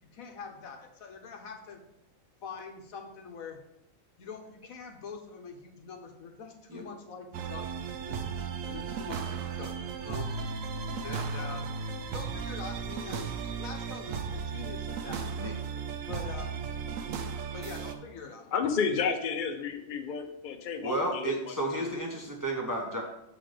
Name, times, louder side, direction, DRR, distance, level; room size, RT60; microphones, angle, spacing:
voice 1, 0.0-1.8 2.4-3.6 4.2-7.8 8.1-8.2 8.6-9.7 10.0-10.4 11.0-11.7 12.1-13.3 13.6-15.4 16.1-16.6 17.5-18.5 19.9-20.0, left 5 dB, 85° left, 4 dB, 1.4 m, -44 dB
sound 1, 7.3-18.0, right 5 dB, 75° right, 1.0 m, -35 dB
voice 2, 18.5-21.8, left 6 dB, 45° left, 6 dB, 0.7 m, -32 dB
voice 3, 20.8-23.0, right 1 dB, 20° right, 0 dB, 0.6 m, -32 dB
6.6 x 4.1 x 5.0 m, 0.84 s
omnidirectional pair, 1.4 m